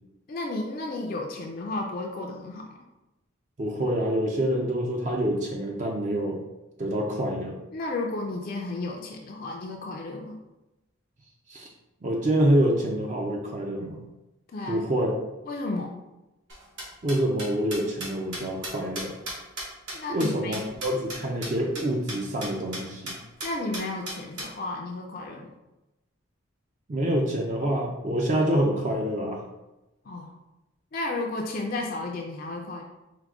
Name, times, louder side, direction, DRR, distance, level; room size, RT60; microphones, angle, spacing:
voice 1, 0.3-2.6 7.7-10.4 14.5-14.9 15.5-16.0 19.9-20.6 23.4-25.5 30.1-30.3 30.9-32.8, left 2 dB, 45° left, 1 dB, 0.4 m, -33 dB
voice 2, 3.6-6.4 6.8-7.6 11.5-11.7 12.0-14.0 14.7-15.2 17.0-19.1 20.1-23.1 26.9-29.4, right 1 dB, 35° right, 0 dB, 0.4 m, -26 dB
sound 1, 16.5-21.2 21.4-21.5 21.7-21.8 22.1-22.2 22.4-22.8 23.1-23.2 23.4-24.5, right 1 dB, 60° right, 1.3 m, -35 dB
4.6 x 2.1 x 3.5 m, 0.99 s
head